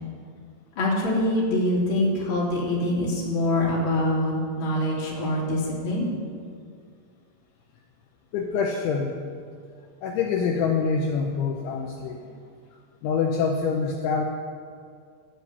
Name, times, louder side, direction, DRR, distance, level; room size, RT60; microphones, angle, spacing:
voice 1, 0.8-6.1, left 1 dB, 30° left, -5 dB, 3.1 m, -24 dB
voice 2, 8.3-9.2 10.0-12.4 13.0-14.3, left 5 dB, 75° left, 1 dB, 3.0 m, -25 dB
12.5 x 9.7 x 8.2 m, 2.2 s
omnidirectional pair, 5.9 m